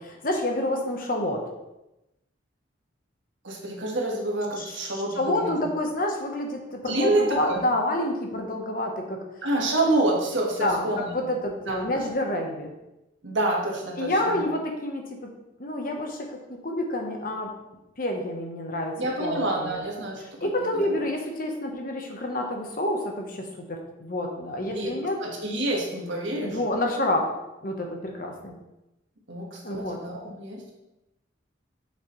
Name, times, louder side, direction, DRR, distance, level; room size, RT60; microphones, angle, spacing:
voice 1, 0.0-1.4 4.6-9.2 10.6-12.7 14.0-15.3 15.6-17.5 18.0-19.8 20.4-25.2 26.4-27.3 27.6-28.5 29.6-30.0, left 1 dB, 45° left, 2 dB, 1.0 m, -28 dB
voice 2, 3.4-5.7 6.8-7.6 9.4-11.1 11.7-12.1 13.2-14.4 19.0-20.9 24.7-24.9 25.2-26.6 29.3-30.7, right 1 dB, 70° right, 0 dB, 1.5 m, -28 dB
6.5 x 6.5 x 3.1 m, 0.94 s
head